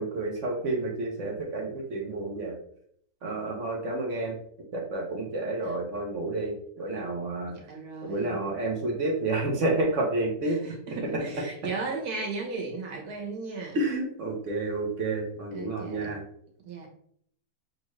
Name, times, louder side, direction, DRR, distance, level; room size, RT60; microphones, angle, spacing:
voice 1, 0.0-2.6 3.2-4.4 4.7-7.7 8.0-10.8 13.7-16.2, right 2 dB, 60° right, 0 dB, 1.1 m, -30 dB
voice 2, 7.5-8.4 10.4-13.8 15.5-16.1 16.6-16.9, right 4 dB, 90° right, -1 dB, 1.6 m, -36 dB
6.3 x 2.5 x 3.1 m, 0.65 s
omnidirectional pair, 1.6 m